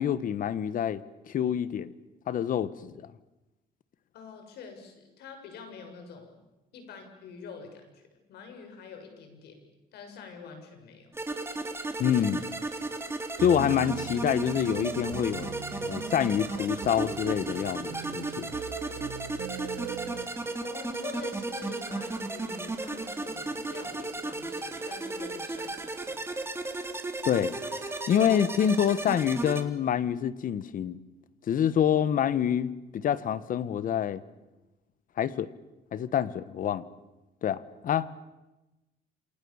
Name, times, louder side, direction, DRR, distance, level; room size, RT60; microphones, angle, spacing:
voice 1, 0.0-1.9 2.3-3.1 12.0-12.4 13.4-15.5 15.8-18.6 27.2-27.6 28.1-31.0 31.5-34.2 35.2-35.5 35.9-36.8 37.4-38.1, left 9 dB, 55° left, 16 dB, 1.5 m, -27 dB
voice 2, 4.1-6.4 6.7-9.6 9.9-11.1 20.5-26.2, left 5 dB, 75° left, 5 dB, 7.2 m, -46 dB
sound 1, 11.1-29.6, right 2 dB, 15° right, 3.4 m, -35 dB
sound 2, 13.4-20.2, right 9 dB, 90° right, 3.1 m, -41 dB
28.5 x 27.0 x 7.3 m, 1.0 s
cardioid pair, 110°, 17 cm